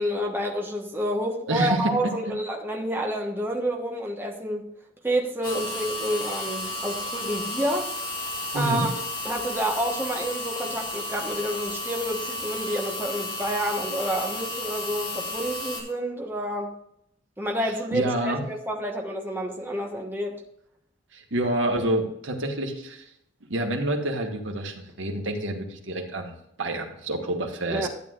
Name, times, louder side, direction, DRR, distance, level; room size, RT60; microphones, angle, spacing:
voice 1, 0.0-4.7 5.0-7.9 8.5-16.7 17.4-20.4 27.7-27.9, equal, 10° right, 0 dB, 1.2 m, -29 dB
voice 2, 1.5-2.0 8.5-8.9 17.6-18.4 21.1-23.1 23.4-27.9, right 1 dB, 75° right, 3 dB, 1.6 m, -28 dB
sound 1, 5.4-15.8, left 1 dB, 25° left, 3.0 m, -33 dB
12.0 x 9.3 x 2.5 m, 0.75 s
head